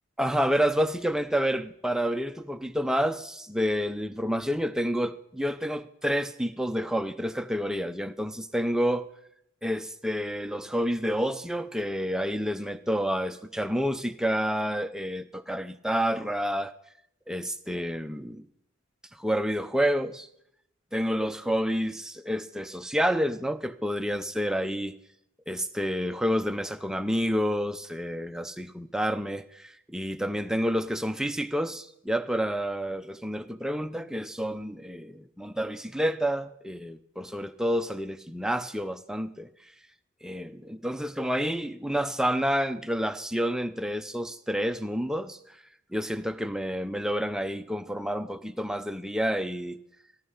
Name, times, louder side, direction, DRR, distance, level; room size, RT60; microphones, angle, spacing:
voice 1, 0.2-9.1 9.6-16.7 17.3-18.5 19.1-20.3 20.9-25.0 25.5-39.5 40.2-45.6 45.9-49.8, equal, 5° right, 0.5 m, -29 dB
14.0 x 13.0 x 5.6 m
head